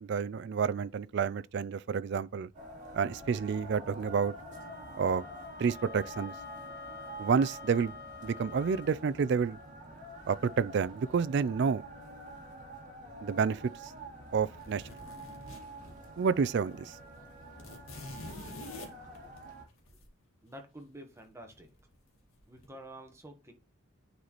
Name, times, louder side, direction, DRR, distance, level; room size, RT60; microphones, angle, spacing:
voice 1, 0.0-2.5 2.9-4.3 5.0-5.3 5.6-6.3 7.2-8.0 8.2-9.6 10.3-11.8 13.2-13.6 14.3-14.8 16.2-17.0, right 6 dB, 50° right, 0.3 m, -29 dB
sound 1, 2.5-19.6, right 1 dB, 35° right, 2.2 m, -47 dB
Wind instrument woodwind instrument, 4.5-9.0, left 6 dB, 50° left, 0.5 m, -48 dB
sound 2, 14.6-16.3 16.6-16.7 17.0-20.1 21.5-22.0 22.4-22.7, left 2 dB, 75° left, 1.8 m, -47 dB
voice 2, 20.4-21.7 22.5-23.5, right 1 dB, 10° right, 1.2 m, -49 dB
9.4 x 4.0 x 3.0 m
head